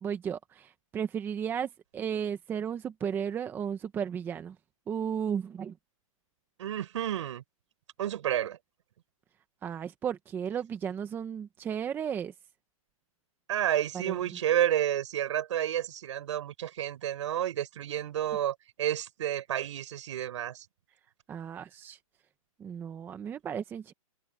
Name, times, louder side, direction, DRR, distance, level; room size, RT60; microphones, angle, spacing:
voice 1, 0.0-4.6 4.9-5.8 9.6-12.3 13.9-14.2 21.3-22.0 22.6-23.9, right 8 dB, 10° right, 1.0 m, -34 dB
voice 2, 6.6-7.4 8.0-8.6 13.5-20.6, right 11 dB, 55° right, 6.8 m, -30 dB
open air
hypercardioid pair, 160°, 18 cm